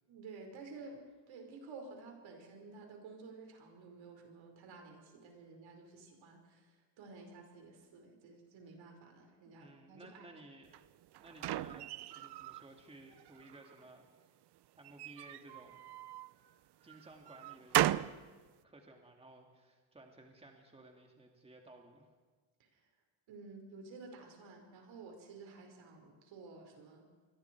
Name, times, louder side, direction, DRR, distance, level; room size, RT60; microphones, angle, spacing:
voice 1, 0.1-1.0 1.3-10.3 16.8-17.0 22.6-22.9 23.3-27.1, right 4 dB, 80° right, 3 dB, 5.1 m, -52 dB
voice 2, 9.4-10.7 11.2-14.4 14.8-16.0 16.8-18.1 18.6-22.1, right 2 dB, 15° right, 2 dB, 2.3 m, -57 dB
sound 1, 10.7-12.7 13.1-13.9 14.8-16.3 16.9-18.2, right 14 dB, 60° right, 0.6 m, -36 dB
27.0 x 22.0 x 4.7 m, 1.4 s
cardioid pair, 140°, 45 cm